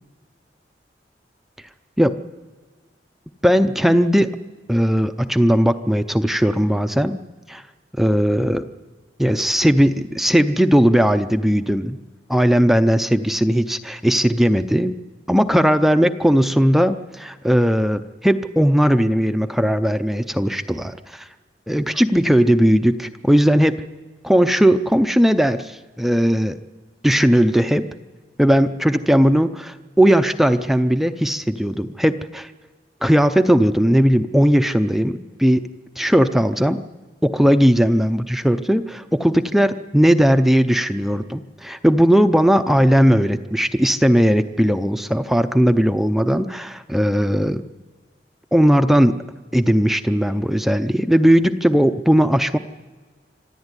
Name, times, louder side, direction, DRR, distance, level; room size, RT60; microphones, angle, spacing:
voice 1, 3.4-4.4 4.7-7.2 7.5-7.6 8.0-8.6 9.2-12.0 12.3-15.0 15.3-21.3 21.7-23.8 24.2-26.6 27.0-27.9 28.4-32.5 33.0-35.7 36.0-36.8 37.2-47.6 48.5-49.2 49.5-52.6, equal, ahead, 8 dB, 0.6 m, -17 dB
26.0 x 13.5 x 9.8 m, 1.4 s
head